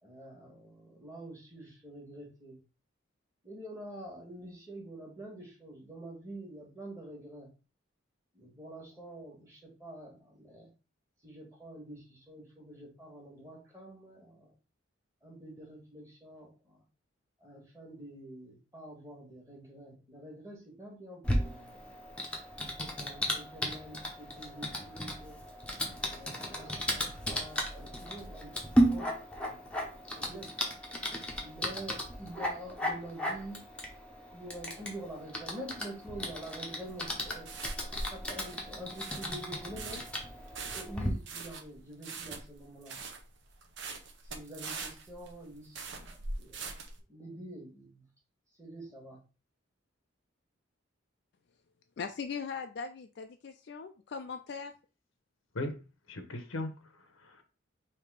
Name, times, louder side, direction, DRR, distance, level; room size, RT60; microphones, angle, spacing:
voice 1, 0.0-2.6 3.4-7.5 8.3-10.7 11.2-14.5 15.2-16.8 17.4-22.0 22.8-25.4 26.1-30.5 31.4-33.6 34.3-37.5 38.1-40.0 40.7-42.9 44.3-46.8 47.1-48.0 48.6-49.2, right 1 dB, 15° right, 1.4 m, -47 dB
Typing, 21.2-41.1, equal, 5° left, 0.7 m, -35 dB
sound 1, 36.9-47.0, right 3 dB, 60° right, 0.8 m, -42 dB
voice 2, 52.0-54.7, left 5 dB, 55° left, 0.4 m, -39 dB
voice 3, 56.1-57.4, left 1 dB, 85° left, 0.9 m, -38 dB
3.5 x 2.8 x 4.7 m
head